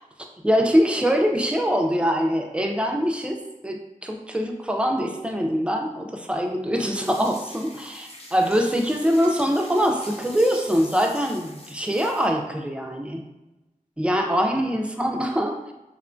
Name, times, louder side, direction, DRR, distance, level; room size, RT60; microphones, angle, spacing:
voice 1, 0.4-13.2 14.0-15.7, equal, 10° right, 3 dB, 0.3 m, -23 dB
sound 1, 7.0-12.3, left 1 dB, 45° left, 0.5 m, -44 dB
2.9 x 2.1 x 2.5 m, 1.0 s
wide cardioid pair, 50°, 14 cm